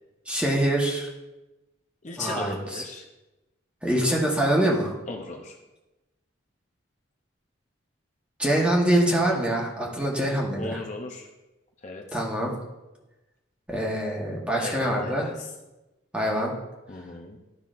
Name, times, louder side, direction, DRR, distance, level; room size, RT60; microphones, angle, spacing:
voice 1, 0.3-1.1 2.2-2.8 3.8-4.9 8.4-10.8 12.1-12.5 13.7-15.3 16.1-16.5, right 1 dB, 5° right, -2 dB, 1.1 m, -24 dB
voice 2, 2.0-3.0 5.1-5.6 10.6-11.3 11.8-12.2 14.6-15.5 16.9-17.4, left 3 dB, 35° left, 1 dB, 0.6 m, -37 dB
12.0 x 5.7 x 2.5 m, 1.0 s
head